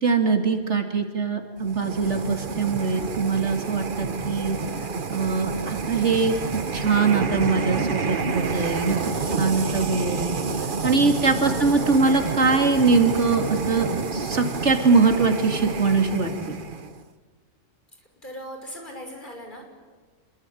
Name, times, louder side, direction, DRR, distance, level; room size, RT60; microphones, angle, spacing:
voice 1, 0.0-4.6 5.1-9.0 9.4-10.3 10.8-16.6, right 4 dB, 65° right, 5 dB, 3.0 m, -22 dB
sound 1, 1.6-17.0, right 4 dB, 45° right, 1.3 m, -29 dB
voice 2, 11.4-11.9 18.2-19.6, equal, 40° left, 2 dB, 6.2 m, -39 dB
28.0 x 22.0 x 9.3 m, 1.4 s
omnidirectional pair, 1.3 m